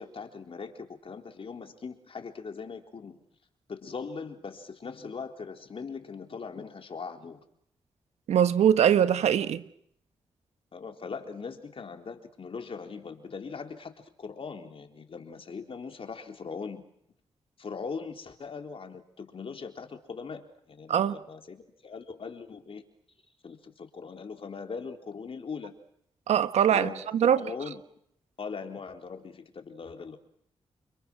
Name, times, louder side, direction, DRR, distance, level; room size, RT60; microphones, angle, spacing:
voice 1, 0.0-3.2 3.7-7.4 10.7-16.8 17.6-22.8 23.4-25.7 26.7-27.0 27.4-27.8 28.4-30.2, left 5 dB, 60° left, 3.8 m, -40 dB
voice 2, 8.3-9.6 20.9-21.2 26.3-27.4, right 9 dB, 85° right, 1.3 m, -22 dB
30.0 x 25.5 x 6.2 m
supercardioid pair, 50°, 11 cm